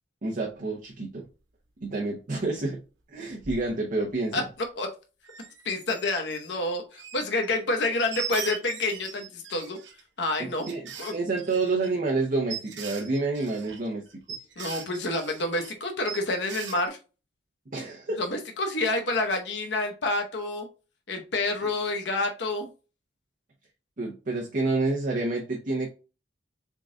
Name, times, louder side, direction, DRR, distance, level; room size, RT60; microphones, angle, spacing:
voice 1, 0.2-1.2 1.8-2.8 3.1-4.4 10.4-10.8 11.1-14.0 17.7-18.2 24.0-25.9, right 3 dB, 45° right, 0 dB, 0.8 m, -28 dB
sound 1, 3.4-3.7 4.1-4.2 4.4-4.5 5.2-6.6 6.9-7.5 7.8-10.0 10.6-15.7 16.1-16.9, right 7 dB, 85° right, 1.0 m, -40 dB
voice 2, 5.6-9.8 10.2-10.6 11.0-11.1 14.6-17.0 18.2-20.7 21.1-22.7, left 2 dB, 65° left, 5 dB, 0.8 m, -28 dB
3.7 x 3.7 x 3.6 m, 0.33 s
head